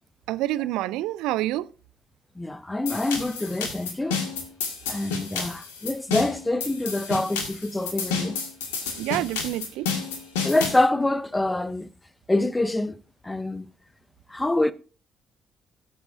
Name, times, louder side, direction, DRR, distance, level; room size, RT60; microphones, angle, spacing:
voice 1, 0.3-1.7 9.0-9.9, right 15 dB, 65° right, 0.4 m, -27 dB
voice 2, 2.4-4.2 4.9-8.4 10.4-11.9 12.3-12.9 13.2-13.7 14.3-14.7, left 2 dB, 15° left, 0.7 m, -25 dB
sound 1, 2.9-10.8, left 5 dB, 70° left, 1.9 m, -31 dB
18.5 x 7.7 x 2.6 m
figure-of-eight pair, 45°, 0 cm